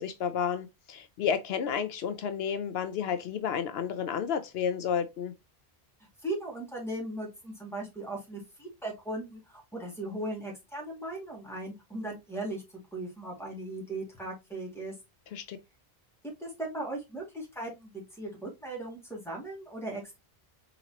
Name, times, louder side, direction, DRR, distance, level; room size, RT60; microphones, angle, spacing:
voice 1, 0.0-5.3 15.3-15.6, left 7 dB, 75° left, 0.8 m, -31 dB
voice 2, 6.2-12.6 12.9-14.9 16.4-20.2, right 1 dB, ahead, 2.1 m, -38 dB
4.3 x 4.0 x 2.8 m
omnidirectional pair, 1.1 m